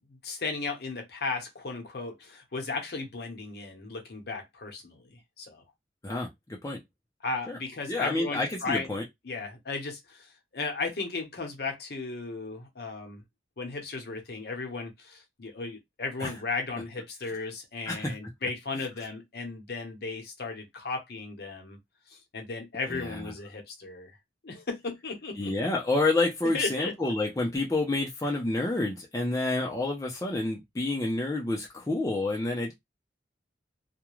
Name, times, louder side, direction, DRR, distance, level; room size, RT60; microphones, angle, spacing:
voice 1, 0.1-5.6 7.2-8.9 9.2-13.2 13.6-21.8 22.1-24.1 24.4-25.5 26.5-26.9, left 4 dB, 55° left, 0.8 m, -35 dB
voice 2, 6.0-6.8 7.5-7.6 7.9-9.0 16.2-16.3 17.2-17.3 17.9-18.1 22.9-23.3 25.4-32.7, left 2 dB, 15° left, 0.5 m, -29 dB
2.3 x 2.1 x 3.0 m
head